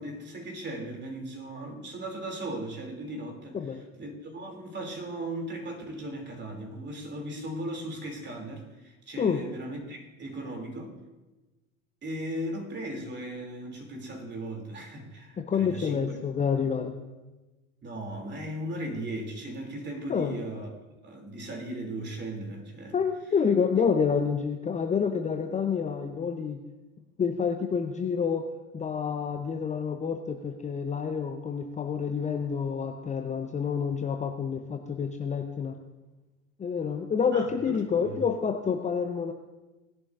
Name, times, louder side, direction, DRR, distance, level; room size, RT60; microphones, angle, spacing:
voice 1, 0.0-3.6 4.0-11.0 12.0-16.2 17.8-20.7 21.0-22.9 37.3-38.2, right 1 dB, 25° right, 2 dB, 2.9 m, -37 dB
voice 2, 15.4-16.9 20.1-20.3 22.9-26.6 27.2-28.5 28.7-35.8 36.6-39.3, left 6 dB, 15° left, 5 dB, 0.7 m, -28 dB
19.0 x 11.0 x 2.6 m, 1.1 s
hypercardioid pair, 80°, 41 cm